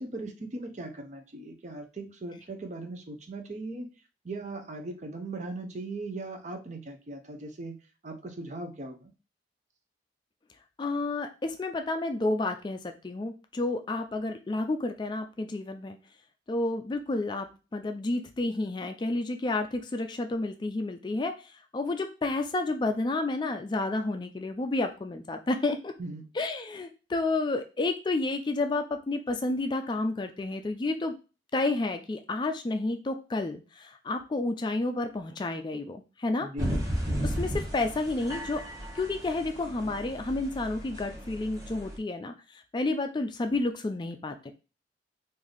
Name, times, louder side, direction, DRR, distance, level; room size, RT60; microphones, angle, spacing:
voice 1, 0.0-3.9 4.2-7.8 8.0-9.1 26.0-26.3 36.4-36.7, right 2 dB, 40° right, 5 dB, 0.6 m, -39 dB
voice 2, 10.8-16.0 16.5-25.9 26.4-31.1 31.5-36.5 37.2-38.6 38.9-44.5, left 2 dB, 25° left, 6 dB, 0.3 m, -30 dB
sound 1, 36.6-42.0, equal, 20° right, 1.1 m, -34 dB
3.3 x 2.6 x 3.8 m, 0.31 s
head